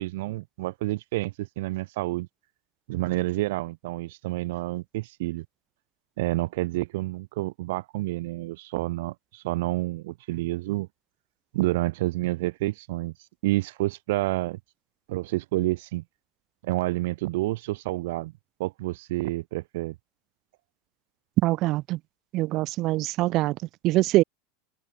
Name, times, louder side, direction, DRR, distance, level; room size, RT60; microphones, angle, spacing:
voice 1, 0.0-2.3 2.9-5.5 6.2-10.9 11.5-13.1 13.4-14.6 15.1-16.0 16.6-18.3 18.6-20.0, right 19 dB, 70° right, 1.6 m, -29 dB
voice 2, 21.4-22.0 22.3-23.6 23.8-24.2, right 18 dB, 40° right, 1.0 m, -23 dB
supercardioid pair, 160°, 0 cm